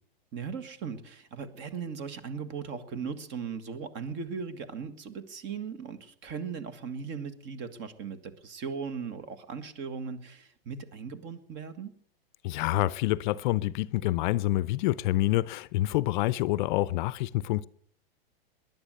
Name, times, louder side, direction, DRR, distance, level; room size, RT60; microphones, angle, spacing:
voice 1, 0.3-12.0, right 6 dB, 40° right, 1.9 m, -38 dB
voice 2, 12.4-17.6, left 16 dB, 50° left, 0.6 m, -27 dB
19.5 x 11.0 x 6.6 m
hypercardioid pair, 125°, 30 cm